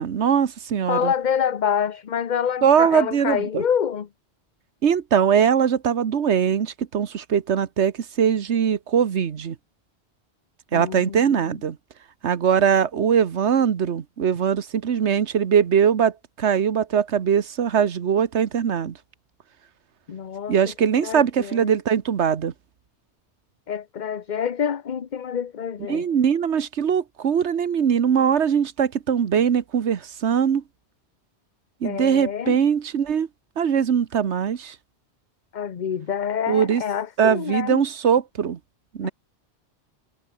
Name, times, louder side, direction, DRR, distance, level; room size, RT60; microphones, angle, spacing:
voice 1, 0.0-1.1 2.6-3.6 4.8-9.5 10.7-11.8 12.2-19.0 20.5-22.5 25.9-30.6 31.8-33.3 33.6-34.7 36.5-36.8 37.2-38.6 38.9-39.1, right 7 dB, 85° right, 1.4 m, -21 dB
voice 2, 0.9-4.1 10.7-11.6 20.1-20.6 21.0-21.7 23.7-26.1 31.8-32.6 35.5-37.9 39.0-39.1, left 8 dB, 45° left, 0.9 m, -27 dB
omnidirectional pair, 1.1 m